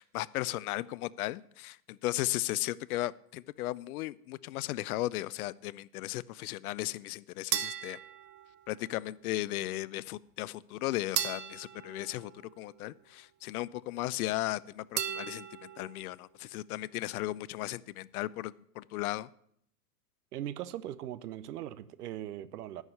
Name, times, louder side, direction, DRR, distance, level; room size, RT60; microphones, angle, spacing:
voice 1, 0.0-8.0 8.7-19.3, left 16 dB, 65° left, 0.5 m, -36 dB
sound 1, 7.5-9.0 11.2-13.0 15.0-16.1, right 11 dB, 25° right, 0.5 m, -37 dB
voice 2, 20.3-22.8, right 12 dB, 75° right, 0.8 m, -40 dB
11.0 x 4.8 x 8.1 m
hypercardioid pair, 110°, 47 cm